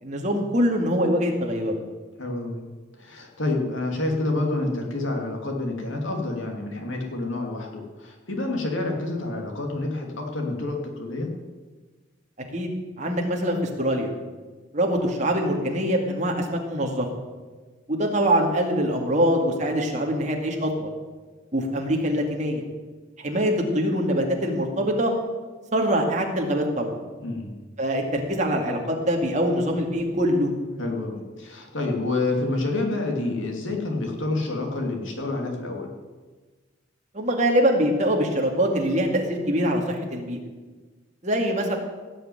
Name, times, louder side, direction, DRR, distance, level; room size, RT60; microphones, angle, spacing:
voice 1, 0.0-1.8 12.5-12.7 13.0-14.1 14.7-17.1 17.9-20.9 21.5-22.6 23.2-25.1 25.7-27.0 27.8-30.5 37.1-40.4 41.2-41.8, equal, 35° right, 1 dB, 2.4 m, -24 dB
voice 2, 2.2-2.6 3.0-11.3 27.2-27.5 30.8-35.9, left 2 dB, 75° left, 1 dB, 2.8 m, -28 dB
17.0 x 6.7 x 9.4 m, 1.3 s
head